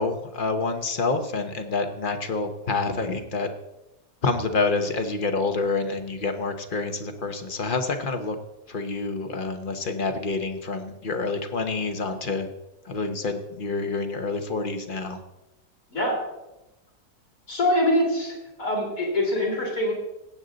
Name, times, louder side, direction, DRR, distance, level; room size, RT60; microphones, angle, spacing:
voice 1, 0.0-3.5 4.2-8.4 8.7-12.5 12.8-15.2, left 3 dB, 40° left, 7 dB, 0.9 m, -27 dB
voice 2, 17.5-19.9, left 1 dB, 55° left, -2 dB, 3.8 m, -24 dB
17.5 x 8.0 x 3.9 m, 0.96 s
omnidirectional pair, 1.7 m